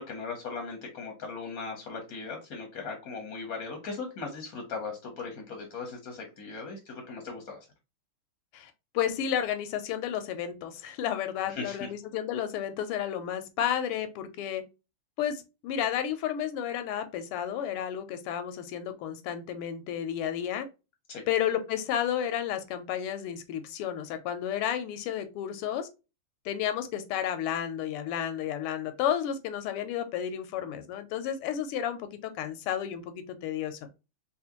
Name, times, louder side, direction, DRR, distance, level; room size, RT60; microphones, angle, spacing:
voice 1, 0.0-7.7 11.5-11.9 21.1-21.2, left 4 dB, 60° left, 0.9 m, -38 dB
voice 2, 8.5-14.6 15.2-20.7 21.3-25.9 26.4-33.8, left 9 dB, 85° left, 1.5 m, -32 dB
4.2 x 2.2 x 2.8 m
omnidirectional pair, 2.4 m